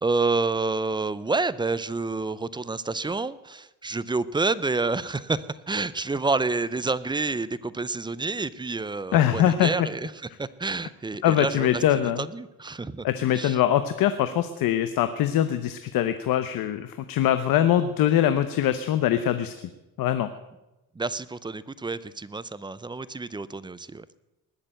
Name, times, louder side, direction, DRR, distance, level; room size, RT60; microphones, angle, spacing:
voice 1, 0.0-11.8 12.2-13.1 13.3-13.6 21.0-24.1, right 3 dB, 15° right, 16 dB, 0.5 m, -28 dB
voice 2, 9.1-9.9 11.2-12.3 13.0-19.5 20.0-20.3, left 11 dB, 80° left, 11 dB, 0.9 m, -23 dB
20.0 x 6.8 x 8.9 m, 0.98 s
cardioid pair, 130°, 34 cm